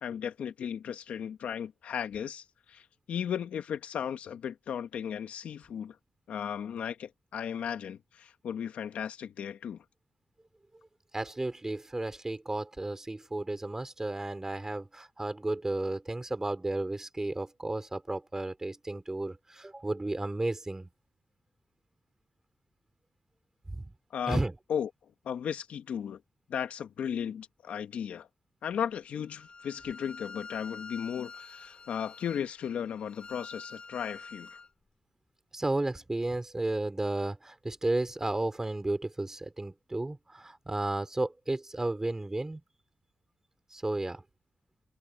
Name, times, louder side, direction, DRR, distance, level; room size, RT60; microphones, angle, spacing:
voice 1, 0.0-2.8 3.1-6.0 6.3-9.8 24.1-24.4 24.7-24.9 25.3-26.2 26.5-28.3 28.6-34.6, left 8 dB, 85° left, 1.9 m, -35 dB
voice 2, 11.1-20.9 23.7-23.8 24.3-24.5 35.5-42.6 43.7-44.2, right 2 dB, 20° right, 4.0 m, -33 dB
Bowed string instrument, 29.3-34.7, left 4 dB, 45° left, 6.8 m, -47 dB
cardioid pair, 55°, 2 cm